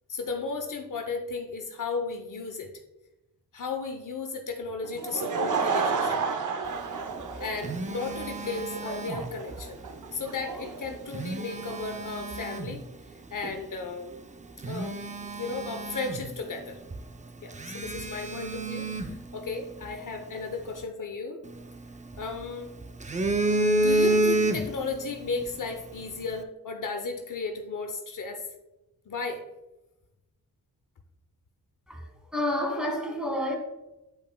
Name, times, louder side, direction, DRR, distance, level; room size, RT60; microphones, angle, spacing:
voice 1, 0.1-2.7 3.5-6.2 7.4-9.8 10.1-12.9 13.3-14.1 14.7-15.0 15.4-16.8 17.4-21.4 22.2-22.7 23.8-28.4 29.1-29.4, left 4 dB, 60° left, 0.8 m, -34 dB
Laughter / Crowd, 4.8-11.8, right 5 dB, 60° right, 0.7 m, -32 dB
Telephone, 7.1-9.7 10.9-12.8 13.4-13.6 14.1-14.2 14.6-16.6 16.9-17.0 17.5-19.9 21.5-22.4 22.8-25.0 25.3-25.5, right 1 dB, 20° right, 0.4 m, -29 dB
voice 2, 32.3-33.6, left 1 dB, ahead, 1.7 m, -29 dB
8.8 x 5.2 x 2.2 m
cardioid pair, 75°, 35 cm